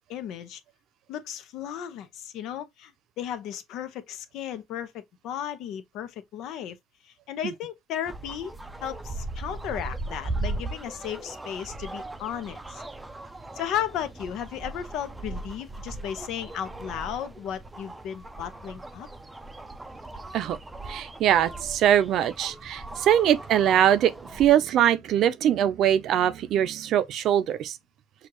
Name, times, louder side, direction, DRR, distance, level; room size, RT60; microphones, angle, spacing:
voice 1, 0.1-0.6 1.1-2.9 3.2-6.8 7.0-8.5 8.8-12.8 13.5-19.1, left 9 dB, 70° left, 0.8 m, -35 dB
sound 1, 8.1-24.5, right 2 dB, 10° right, 0.5 m, -38 dB
voice 2, 20.9-27.8, right 10 dB, 60° right, 0.6 m, -22 dB
6.3 x 2.4 x 3.0 m
cardioid pair, 125°, 0 cm